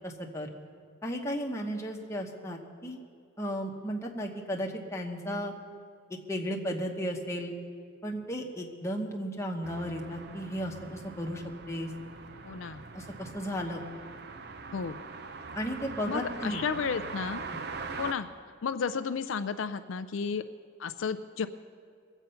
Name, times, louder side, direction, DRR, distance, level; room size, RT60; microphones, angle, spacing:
voice 1, 0.0-0.5 1.0-3.0 3.4-5.5 6.3-7.6 8.0-11.9 12.9-13.8 15.5-16.6, equal, 15° left, 0 dB, 1.2 m, -34 dB
sound 1, 9.6-18.1, right 4 dB, 55° right, 0.7 m, -42 dB
voice 2, 12.4-12.8 14.7-15.0 16.1-17.4 18.0-18.3 18.6-20.4 20.8-21.5, left 6 dB, 70° left, 11 dB, 0.4 m, -32 dB
21.5 x 8.1 x 5.6 m, 2.2 s
head